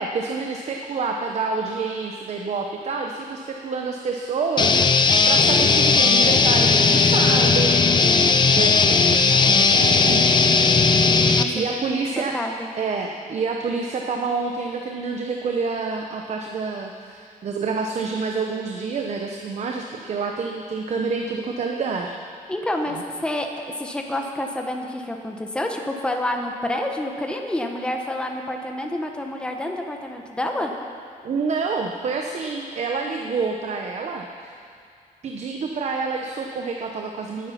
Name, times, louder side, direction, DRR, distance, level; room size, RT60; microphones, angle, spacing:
voice 1, 0.0-7.8 8.4-10.2 11.5-12.4 12.8-22.2 22.9-23.0 31.2-34.5 35.2-37.5, right 4 dB, 50° right, 2 dB, 0.9 m, -28 dB
sound 1, 4.6-11.4, left 4 dB, 30° left, 0.7 m, -17 dB
voice 2, 11.3-12.0 12.3-12.7 22.5-30.7, left 1 dB, 5° left, 2 dB, 1.0 m, -28 dB
18.5 x 9.5 x 5.8 m, 2.3 s
wide cardioid pair, 165°, 14 cm